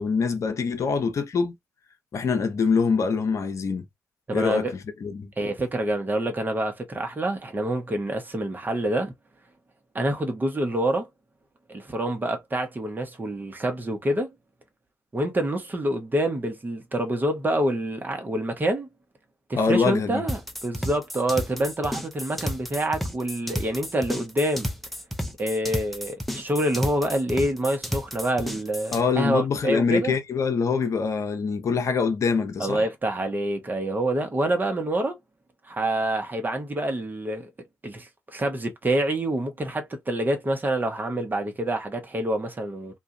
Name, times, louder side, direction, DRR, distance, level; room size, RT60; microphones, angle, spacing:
voice 1, 0.0-1.5 2.1-3.8 4.3-4.7 5.0-5.3 19.5-20.2 28.9-32.8, left 5 dB, 55° left, 0.7 m, -24 dB
voice 2, 4.3-4.7 5.4-9.1 9.9-11.1 11.7-14.3 15.1-18.9 19.5-24.7 25.4-30.1 32.6-35.2 35.6-37.5 37.8-43.0, right 1 dB, 30° right, 1.2 m, -27 dB
sound 1, 20.3-29.0, equal, ahead, 0.8 m, -32 dB
2.6 x 2.4 x 2.7 m
hypercardioid pair, 40°, 6 cm